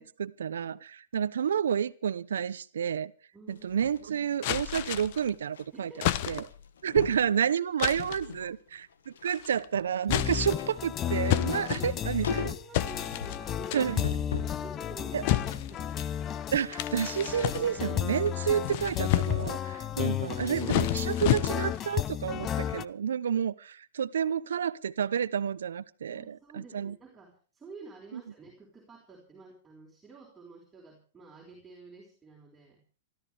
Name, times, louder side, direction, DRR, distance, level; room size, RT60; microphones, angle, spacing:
voice 1, 0.0-3.1 3.5-5.9 6.3-6.4 6.8-12.5 13.7-14.0 15.1-15.2 16.5-26.3 26.7-26.9, right 8 dB, 85° right, 0.8 m, -30 dB
voice 2, 3.3-3.7 5.7-6.2 8.1-8.5 11.6-11.9 12.2-14.0 14.4-16.0 19.9-20.6 26.1-32.8, right 3 dB, 10° right, 4.9 m, -50 dB
sound 1, 3.5-5.7 5.9-6.2 6.5-7.3 7.8-8.5 8.8-14.6 15.1-19.7 20.1-20.2, left 6 dB, 85° left, 1.6 m, -41 dB
sound 2, 4.4-5.3 6.0-6.7 7.8-8.3 9.2-9.6 10.0-10.7 11.3-12.3 12.7-13.4 13.7-14.1 15.2-16.1 16.7-18.0 18.5-19.6 20.3-21.9, left 14 dB, 50° left, 1.0 m, -31 dB
sound 3, 10.1-22.9, left 10 dB, 25° left, 0.7 m, -33 dB
27.0 x 13.5 x 3.5 m
hypercardioid pair, 130°, 0 cm